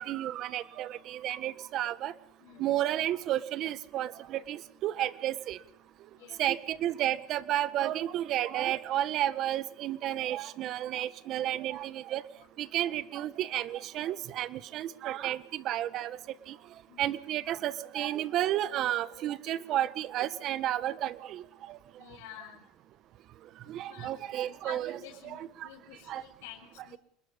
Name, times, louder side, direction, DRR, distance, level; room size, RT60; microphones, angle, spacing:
voice 1, 0.0-2.1 2.6-5.6 6.4-12.2 12.6-16.2 16.5-16.6 17.0-21.8 23.7-25.0 25.2-25.7 26.1-26.2, right 12 dB, 45° right, 15 dB, 1.6 m, -32 dB
voice 2, 22.0-22.6 23.9-27.0, left 11 dB, 85° left, -1 dB, 5.9 m, -50 dB
28.5 x 21.5 x 5.4 m, 0.69 s
cardioid pair, 145°, 0 cm